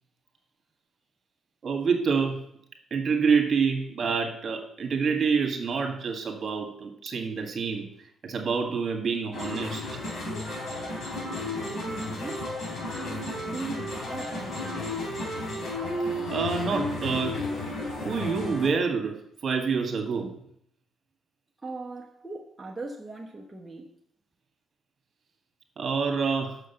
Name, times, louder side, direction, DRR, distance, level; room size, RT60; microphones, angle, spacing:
voice 1, 1.6-2.4 2.9-7.9 8.2-10.0 16.3-17.4 18.0-20.3 25.8-26.6, right 5 dB, 50° right, 1.8 m, -27 dB
sound 1, 9.3-18.7, left 2 dB, 65° left, 3.4 m, -33 dB
voice 2, 11.6-12.6 12.9-15.3 21.6-24.0, right 3 dB, 15° right, 1.1 m, -40 dB
6.4 x 6.4 x 7.1 m
cardioid pair, 90°, 0 cm